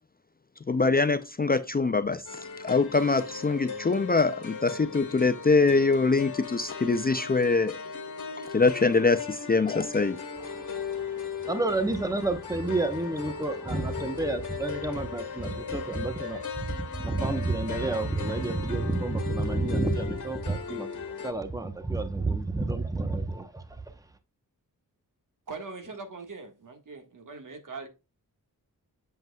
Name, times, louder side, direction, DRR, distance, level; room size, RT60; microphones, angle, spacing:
voice 1, 0.7-7.8 8.4-10.2, left 4 dB, 25° left, 0.5 m, -24 dB
sound 1, 2.3-21.3, left 6 dB, 55° left, 1.7 m, -38 dB
voice 2, 10.4-16.7 17.0-23.6, right 2 dB, 10° right, 1.0 m, -30 dB
voice 3, 25.5-27.9, right 4 dB, 60° right, 1.7 m, -41 dB
7.9 x 7.6 x 2.3 m
wide cardioid pair, 125°, 35 cm